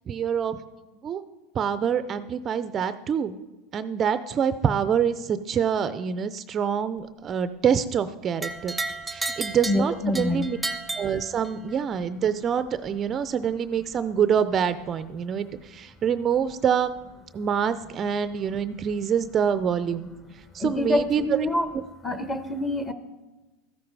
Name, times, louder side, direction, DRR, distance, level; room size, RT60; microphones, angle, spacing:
voice 1, 0.1-0.6 1.0-1.2 1.5-3.4 3.7-8.8 9.1-10.6 11.0-17.0 17.3-20.1 20.5-21.2, right 7 dB, 30° right, 12 dB, 0.5 m, -26 dB
sound 1, 8.4-11.8, right 2 dB, 5° right, 0.8 m, -33 dB
voice 2, 9.7-10.5 20.6-21.7 22.0-22.9, left 1 dB, 15° left, 10 dB, 1.1 m, -26 dB
13.5 x 10.5 x 4.7 m, 1.2 s
supercardioid pair, 125°, 0 cm